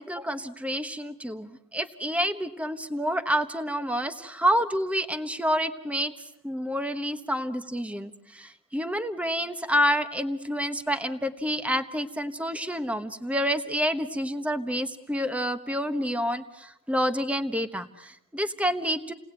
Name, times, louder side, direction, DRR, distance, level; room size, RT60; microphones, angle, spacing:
voice 1, 0.0-6.1 6.4-19.1, equal, 5° right, 9 dB, 1.1 m, -28 dB
29.5 x 19.0 x 8.9 m, 0.81 s
head